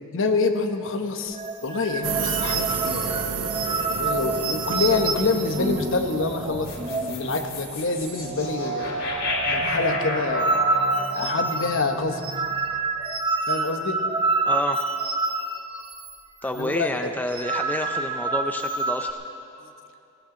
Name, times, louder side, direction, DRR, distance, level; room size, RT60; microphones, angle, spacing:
voice 1, 0.1-3.6 4.0-10.5 11.1-12.2 13.5-14.0 16.6-17.1 19.6-19.7, left 3 dB, 60° left, 6 dB, 1.1 m, -27 dB
sound 1, 1.3-7.3 7.6-7.7 8.0-8.5 8.8-16.2 16.4-16.7 17.1-19.1, right 3 dB, 25° right, 0.8 m, -28 dB
sound 2, 2.0-8.2, right 6 dB, 60° right, 0.9 m, -32 dB
sound 3, 6.6-13.0, equal, 45° left, 1.9 m, -30 dB
voice 2, 14.5-14.8 16.4-19.2, left 1 dB, 10° left, 5 dB, 0.5 m, -29 dB
18.0 x 17.5 x 3.8 m, 2.6 s
head